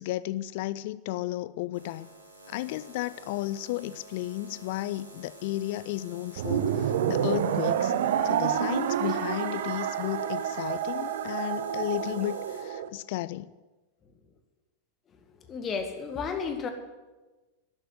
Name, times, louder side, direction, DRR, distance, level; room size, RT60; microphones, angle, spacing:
voice 1, 0.0-2.1 2.5-7.9 8.2-13.5, left 15 dB, 50° left, 0.5 m, -33 dB
sound 1, 1.7-12.6, right 2 dB, 85° right, 2.8 m, -50 dB
sound 2, 6.4-12.9, right 9 dB, 55° right, 0.8 m, -28 dB
voice 2, 15.5-16.7, left 5 dB, 25° left, 2.0 m, -32 dB
12.5 x 11.0 x 7.8 m
figure-of-eight pair, 90°, 0 cm